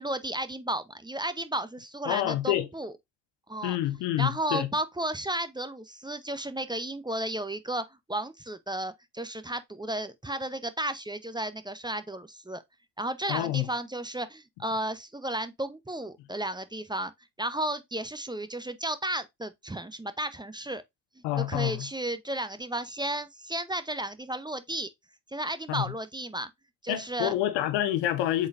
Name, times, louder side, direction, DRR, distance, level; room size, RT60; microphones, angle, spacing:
voice 1, 0.0-2.9 3.5-3.8 4.2-12.6 13.0-17.1 17.4-20.8 21.4-24.9 25.3-26.5 26.8-27.3, right 1 dB, 10° right, 0.6 m, -33 dB
voice 2, 2.1-2.7 3.6-4.7 13.3-13.7 21.2-21.9 25.7-25.8 26.9-28.5, left 13 dB, 85° left, 0.8 m, -27 dB
5.2 x 3.9 x 2.5 m
supercardioid pair, 55°, 41 cm